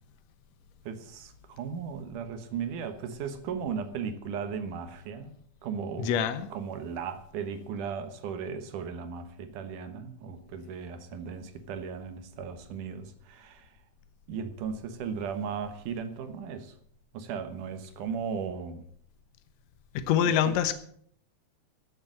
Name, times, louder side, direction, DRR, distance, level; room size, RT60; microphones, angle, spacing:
voice 1, 0.8-6.1 6.5-13.8 14.3-16.8 17.1-18.9 20.5-20.6, right 6 dB, 85° right, 9 dB, 2.8 m, -36 dB
voice 2, 6.0-6.5 19.9-20.7, left 9 dB, 65° left, 10 dB, 2.1 m, -25 dB
14.5 x 8.2 x 7.4 m, 0.63 s
omnidirectional pair, 3.5 m